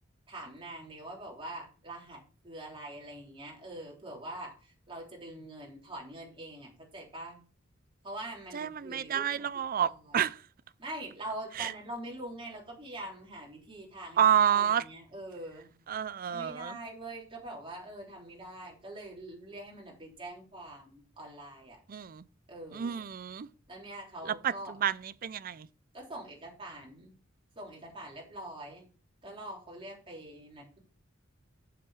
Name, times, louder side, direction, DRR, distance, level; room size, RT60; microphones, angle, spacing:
voice 1, 0.3-2.2 2.4-7.4 8.0-9.5 9.9-10.2 10.8-14.2 14.5-15.7 16.3-21.8 22.5-23.0 23.7-24.8 25.9-27.1 27.5-28.9 29.2-30.8, right 1 dB, 25° right, 3.3 m, -44 dB
voice 2, 8.5-10.4 11.6-11.7 14.2-14.9 15.9-16.8 21.9-22.2 22.7-23.5 24.3-24.5 24.8-25.7, right 9 dB, 45° right, 0.4 m, -29 dB
7.4 x 7.1 x 4.9 m
head